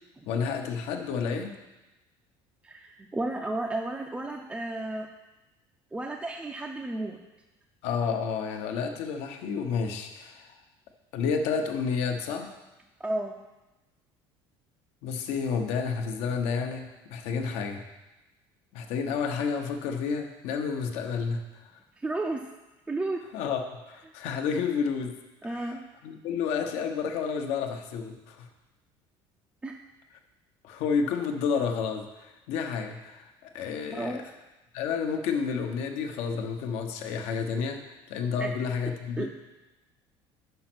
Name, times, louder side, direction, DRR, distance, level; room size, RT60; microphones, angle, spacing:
voice 1, 0.2-1.5 7.8-10.5 11.1-12.5 15.0-17.8 18.7-21.4 23.3-25.1 25.5-25.7 26.0-28.5 30.6-34.2 34.7-37.8 38.1-39.3, left 6 dB, 75° left, 4 dB, 0.9 m, -30 dB
voice 2, 2.6-5.1 5.9-7.2 13.0-13.4 22.0-22.5 22.9-23.2 25.4-25.8 29.6-29.8 33.9-34.2 38.4-38.5 39.2-39.3, right 2 dB, 10° right, 1 dB, 0.4 m, -32 dB
5.6 x 5.2 x 6.0 m, 1.1 s
cardioid pair, 125°, 11 cm